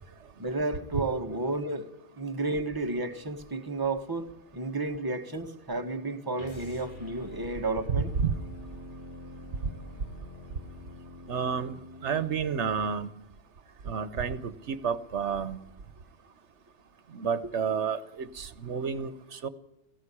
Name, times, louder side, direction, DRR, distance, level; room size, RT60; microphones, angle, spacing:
voice 1, 0.4-1.9 2.1-4.3 4.5-8.1, right 2 dB, 20° right, 1.4 m, -32 dB
sound 1, 6.3-12.5, left 1 dB, 45° left, 1.9 m, -46 dB
voice 2, 7.9-8.3 11.3-11.8 12.0-13.1 13.8-15.6 17.1-19.5, right 6 dB, 80° right, 1.3 m, -30 dB
17.5 x 15.5 x 9.9 m
omnidirectional pair, 1.2 m